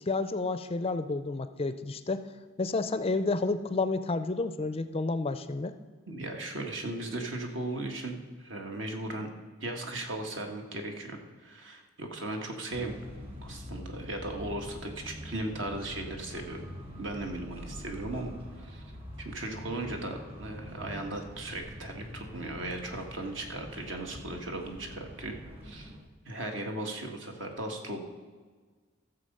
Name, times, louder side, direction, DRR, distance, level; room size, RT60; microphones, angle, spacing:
voice 1, 0.1-2.3 2.6-5.7, left 3 dB, 30° left, 12 dB, 0.4 m, -30 dB
voice 2, 6.1-9.3 9.6-12.9 13.4-16.6 17.0-18.8 19.2-25.3 25.6-25.9 26.2-28.0, right 2 dB, 65° right, 3 dB, 1.6 m, -37 dB
sound 1, 12.7-26.0, equal, 30° right, 2.3 m, -44 dB
14.5 x 7.0 x 5.4 m, 1.5 s
head